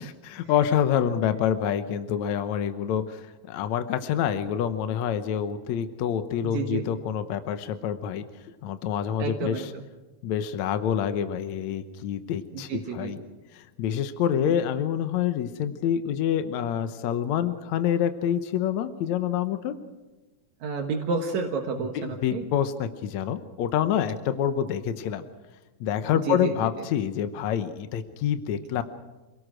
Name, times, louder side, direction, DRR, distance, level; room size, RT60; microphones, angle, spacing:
voice 1, 0.0-8.2 8.6-9.7 10.2-13.2 13.5-19.8 22.0-25.2 25.8-28.8, left 9 dB, 75° left, 9 dB, 2.2 m, -27 dB
voice 2, 6.4-6.8 9.2-9.8 12.5-13.1 14.3-14.6 20.6-22.5 26.1-26.5, right 5 dB, 70° right, 3 dB, 2.7 m, -30 dB
28.5 x 18.0 x 6.2 m, 1.2 s
omnidirectional pair, 3.4 m